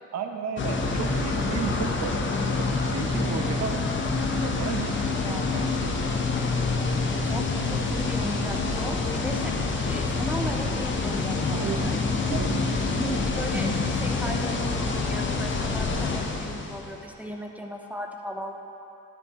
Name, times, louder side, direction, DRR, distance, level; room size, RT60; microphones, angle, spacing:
voice 1, 0.1-3.8 4.2-6.0 11.5-12.0 12.3-12.8, right 6 dB, 60° right, 6 dB, 0.8 m, -34 dB
sound 1, 0.6-16.9, left 3 dB, 40° left, 1.0 m, -27 dB
voice 2, 7.2-12.0 12.3-18.5, equal, 5° right, 2 dB, 0.8 m, -36 dB
10.5 x 9.6 x 3.0 m, 2.8 s
cardioid pair, 90°, 30 cm